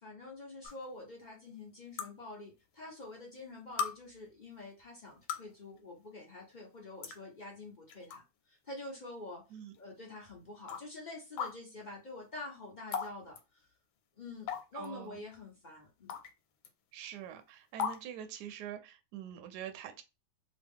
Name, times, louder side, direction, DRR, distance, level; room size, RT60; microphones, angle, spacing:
voice 1, 0.0-8.2 8.5-13.6 14.2-16.1, left 2 dB, 55° left, 0.5 m, -47 dB
sound 1, 0.6-0.7 2.0-2.1 3.1-3.2 3.8-3.9 5.1-5.5 6.5-6.6 7.0-7.2 7.9-8.2 8.7-8.8 9.7-9.8 10.7-10.8 11.4-11.5 12.9-13.1 13.4-13.5 14.5-14.9 16.1-16.3 16.6-16.7 17.8-18.0, left 6 dB, 85° left, 1.4 m, -36 dB
voice 2, 14.7-15.2 16.9-20.0, right 10 dB, 70° right, 1.1 m, -44 dB
3.0 x 2.3 x 3.4 m
omnidirectional pair, 2.1 m